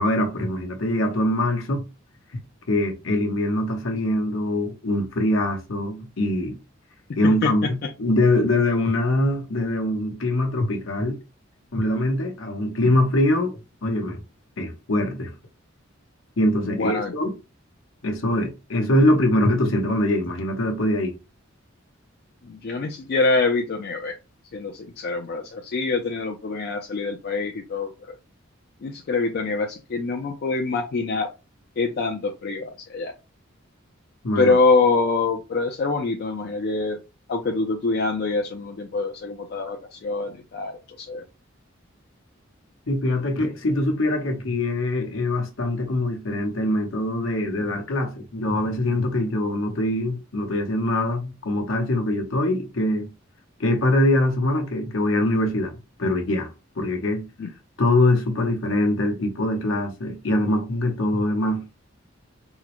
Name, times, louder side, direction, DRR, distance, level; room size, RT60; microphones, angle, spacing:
voice 1, 0.0-1.8 2.7-6.6 7.2-11.2 11.7-13.6 13.8-14.2 14.6-15.3 16.4-17.3 18.0-21.1 34.2-34.6 42.9-53.1 53.6-55.7 56.0-56.5 56.8-57.3 57.8-61.7, left 1 dB, 75° left, 0.9 m, -23 dB
voice 2, 7.4-7.9 16.6-17.1 22.4-24.2 24.5-28.1 28.8-31.3 31.8-33.1 34.4-37.0 37.3-41.2 57.4-57.5, left 3 dB, 50° left, 0.4 m, -25 dB
3.6 x 2.0 x 2.9 m
head